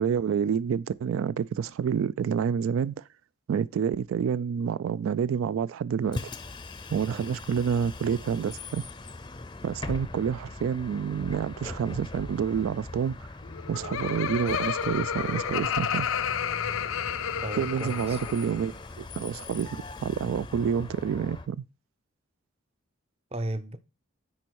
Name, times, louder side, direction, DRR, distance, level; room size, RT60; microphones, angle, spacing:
voice 1, 0.0-3.0 3.5-6.2 6.9-8.8 9.6-13.2 13.7-16.1 17.6-21.6, right 7 dB, 90° right, 0.3 m, -28 dB
Bus, 6.0-21.5, left 2 dB, 20° left, 0.5 m, -41 dB
voice 2, 6.9-7.4 17.4-18.2 23.3-23.8, right 1 dB, 30° right, 0.5 m, -35 dB
Laughter, 13.4-18.7, left 8 dB, 90° left, 0.5 m, -31 dB
9.7 x 4.3 x 4.6 m
head